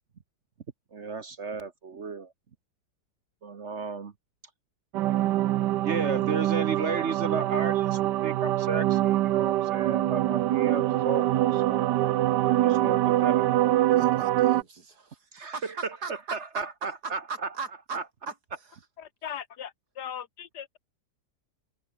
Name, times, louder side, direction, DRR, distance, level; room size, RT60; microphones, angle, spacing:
voice 1, 0.9-2.3 3.4-4.1 5.8-11.9 12.6-13.8 15.3-15.5 15.8-17.5 17.9-18.0, right 5 dB, 45° right, 1.3 m, -34 dB
sound 1, 4.9-14.6, right 14 dB, 80° right, 1.3 m, -24 dB
voice 2, 13.9-18.0 18.3-18.4 18.6-18.8, right 4 dB, 65° right, 3.2 m, -39 dB
voice 3, 19.0-20.8, left 9 dB, 70° left, 1.7 m, -39 dB
omnidirectional pair, 1.8 m